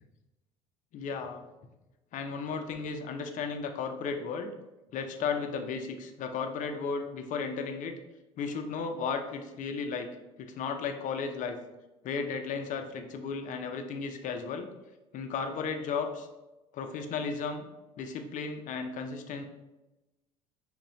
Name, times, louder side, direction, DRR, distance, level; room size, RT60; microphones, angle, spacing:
voice 1, 0.9-1.4 2.1-4.5 4.9-8.0 8.4-10.1 10.4-11.6 12.0-14.7 15.1-16.3 16.7-17.7 18.0-19.4, left 5 dB, 45° left, 6 dB, 0.7 m, -34 dB
5.4 x 2.4 x 4.0 m, 1.0 s
hypercardioid pair, 70°, 18 cm